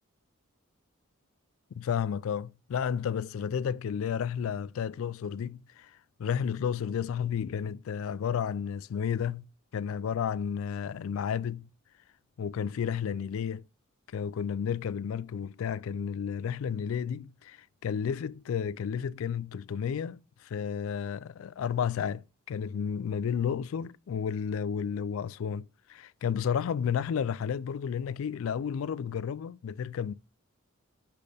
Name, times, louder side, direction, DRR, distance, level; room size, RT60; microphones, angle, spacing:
voice 1, 1.8-9.5 9.7-11.7 12.4-13.6 14.1-30.1, left 7 dB, 65° left, 0.3 m, -32 dB
12.0 x 4.2 x 3.4 m
head